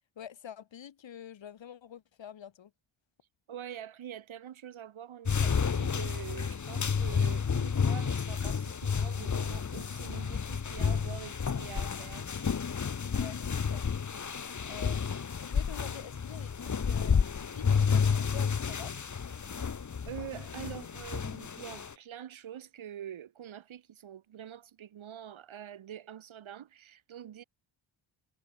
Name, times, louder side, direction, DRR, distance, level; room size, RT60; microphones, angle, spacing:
voice 1, 0.2-2.7 13.1-13.8 14.7-19.0, left 9 dB, 65° left, 3.9 m, -47 dB
voice 2, 3.5-12.3 19.4-19.5 20.1-27.4, right 10 dB, 80° right, 3.5 m, -45 dB
sound 1, 5.3-21.9, left 6 dB, 35° left, 2.1 m, -31 dB
wide cardioid pair, 135°, 47 cm